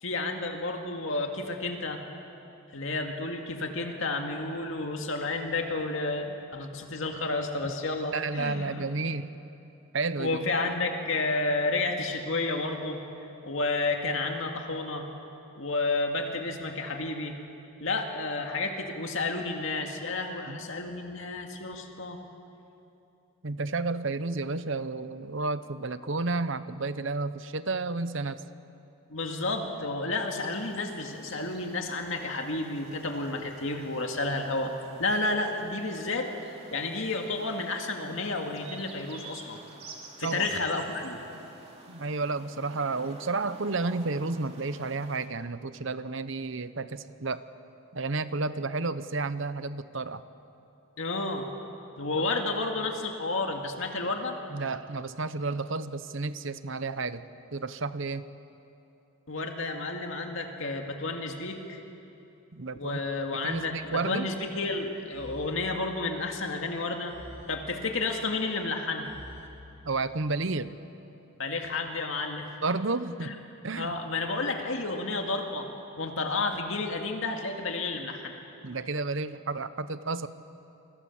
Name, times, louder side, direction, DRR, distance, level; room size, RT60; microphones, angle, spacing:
voice 1, 0.0-2.0 2.7-8.9 10.2-13.0 13.4-15.1 15.6-17.4 17.8-22.2 29.1-34.7 35.0-36.3 36.7-39.6 40.2-41.2 51.0-51.5 52.0-54.4 59.3-61.8 62.7-67.1 67.5-69.1 71.4-72.5 73.2-73.4 73.8-75.7 76.0-78.4, left 3 dB, 65° left, 3 dB, 2.1 m, -31 dB
voice 2, 8.1-9.3 9.9-10.4 20.5-20.6 23.4-28.4 40.2-40.5 41.9-47.4 47.9-50.2 52.1-52.2 54.5-57.2 57.5-58.2 62.5-63.0 63.4-64.3 69.8-70.7 72.6-73.3 73.6-73.9 78.6-80.3, right 3 dB, 60° right, 13 dB, 0.9 m, -31 dB
sound 1, 30.3-45.3, right 3 dB, 30° right, 2.8 m, -50 dB
sound 2, 63.5-64.5 65.1-66.4 67.1-68.4 69.1-70.2, equal, 10° right, 2.3 m, -50 dB
29.0 x 25.0 x 7.3 m, 2.9 s
head